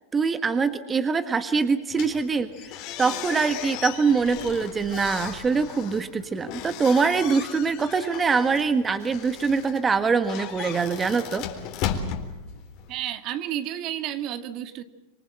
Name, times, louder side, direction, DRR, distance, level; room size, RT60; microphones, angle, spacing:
voice 1, 0.1-2.5 3.0-11.4, right 5 dB, 20° right, 10 dB, 1.5 m, -23 dB
sound 1, 1.9-13.0, left 9 dB, 55° left, 3.8 m, -36 dB
voice 2, 12.9-14.8, right 11 dB, 45° right, 9 dB, 1.9 m, -31 dB
26.5 x 24.0 x 7.7 m, 0.99 s
hypercardioid pair, 100°, 0 cm